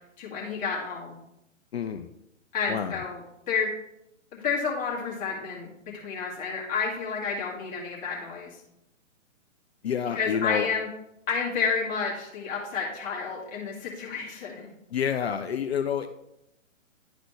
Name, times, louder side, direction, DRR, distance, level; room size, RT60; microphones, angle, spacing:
voice 1, 0.2-1.2 2.5-3.2 3.5-3.7 4.3-5.7 5.9-8.6 10.1-10.9 11.3-14.7, left 5 dB, 20° left, -4 dB, 1.9 m, -30 dB
voice 2, 1.7-2.1 2.7-3.0 9.8-10.7 14.9-16.1, left 8 dB, 50° left, 7 dB, 0.5 m, -28 dB
11.5 x 4.0 x 3.2 m, 0.83 s
figure-of-eight pair, 125°, 39 cm